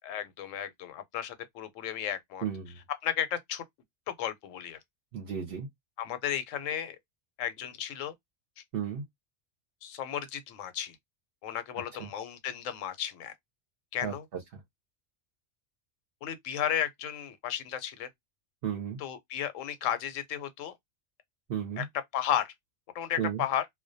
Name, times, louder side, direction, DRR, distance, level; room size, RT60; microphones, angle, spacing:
voice 1, 0.0-2.4 3.0-3.6 4.1-4.8 6.0-7.0 7.4-8.1 9.8-11.0 11.4-13.3 13.9-14.2 16.2-18.1 19.0-20.7 21.8-21.9 22.1-22.5 22.9-23.7, left 10 dB, 85° left, 0.9 m, -33 dB
voice 2, 2.4-2.8 5.1-5.7 8.7-9.0 12.0-12.1 14.0-14.1 18.6-19.0 21.5-21.9 23.2-23.4, right 8 dB, 60° right, 0.7 m, -33 dB
2.3 x 2.1 x 2.5 m
omnidirectional pair, 1.3 m